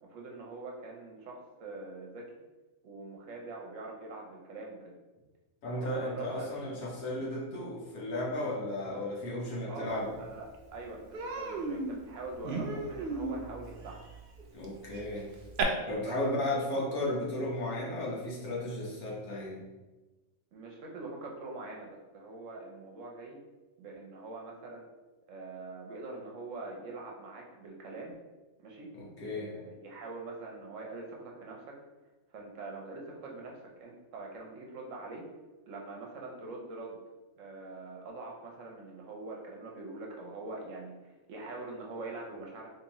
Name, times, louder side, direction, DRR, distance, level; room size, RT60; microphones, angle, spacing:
voice 1, 0.0-2.3 2.8-4.9 5.7-6.9 9.7-14.0 16.0-16.1 16.4-16.7 20.5-23.4 23.8-24.9 25.3-28.1 28.6-28.9 29.3-31.7 32.3-35.2 35.7-37.0 37.4-42.7, right 3 dB, 65° right, 0 dB, 0.9 m, -44 dB
voice 2, 5.6-10.1 14.5-15.3 15.9-19.6 29.0-29.5, left 1 dB, 75° left, -5 dB, 1.5 m, -34 dB
Human voice, 10.1-10.2 10.5-10.7 11.1-15.6, right 4 dB, 85° right, 0.4 m, -36 dB
3.6 x 3.1 x 2.9 m, 1.2 s
omnidirectional pair, 1.6 m